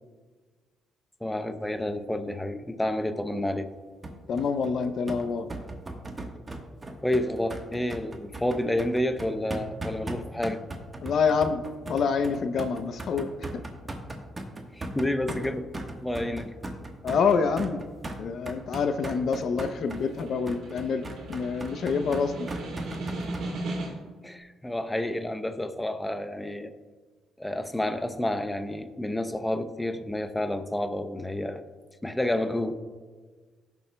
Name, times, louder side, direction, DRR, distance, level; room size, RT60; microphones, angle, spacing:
voice 1, 1.2-3.7 7.0-10.6 14.7-15.6 16.0-16.5 24.2-26.7 27.4-31.6 32.0-32.8, left 1 dB, 10° left, 9 dB, 0.6 m, -29 dB
sound 1, 4.0-23.5, right 1 dB, 25° right, 1.2 m, -38 dB
voice 2, 4.3-5.5 11.0-11.6 11.9-13.6 17.0-17.8 18.2-22.5, left 5 dB, 65° left, 9 dB, 0.6 m, -27 dB
Snare drum, 19.3-24.2, right 2 dB, 75° right, 2.7 m, -37 dB
17.5 x 6.9 x 2.2 m, 1.4 s
cardioid pair, 90°, 0 cm